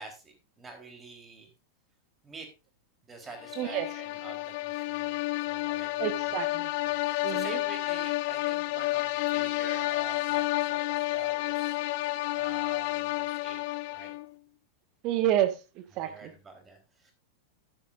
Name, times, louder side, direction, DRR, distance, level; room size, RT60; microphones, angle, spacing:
voice 1, 0.0-1.5 2.2-2.5 3.0-6.3 6.8-11.8 12.3-13.6 13.9-14.1 15.9-17.1, right 3 dB, 15° right, 3 dB, 4.0 m, -47 dB
sound 1, 3.4-14.3, left 19 dB, 50° left, 0.5 m, -30 dB
voice 2, 6.0-6.7 7.2-7.6 15.0-16.3, right 12 dB, 40° right, 9 dB, 1.6 m, -29 dB
14.0 x 10.0 x 2.6 m, 0.28 s
figure-of-eight pair, 90°, 0 cm